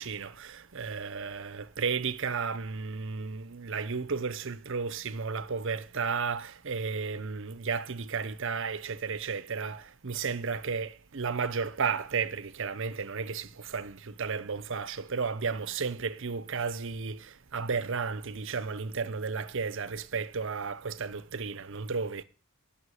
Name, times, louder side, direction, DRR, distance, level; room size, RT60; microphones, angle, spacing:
voice 1, 0.0-22.2, right 5 dB, 60° right, 0.8 m, -33 dB
16.0 x 5.8 x 10.0 m
head